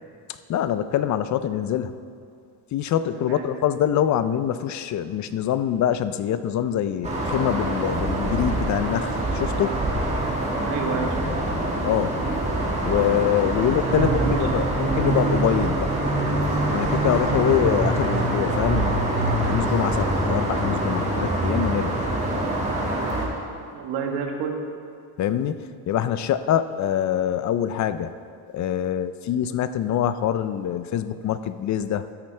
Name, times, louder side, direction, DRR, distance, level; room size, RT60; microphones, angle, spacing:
voice 1, 0.5-1.9 2.7-9.7 11.8-12.1 12.8-15.9 16.7-22.0 25.2-25.6 25.9-28.1 28.5-32.0, left 10 dB, 45° left, 13 dB, 0.5 m, -24 dB
voice 2, 3.1-3.5 10.6-11.5 13.9-14.7 23.7-24.6, right 6 dB, 85° right, 3 dB, 1.4 m, -30 dB
sound 1, 7.0-23.3, right 1 dB, 15° right, 1.9 m, -24 dB
13.0 x 8.4 x 3.3 m, 2.5 s
cardioid pair, 115°, 41 cm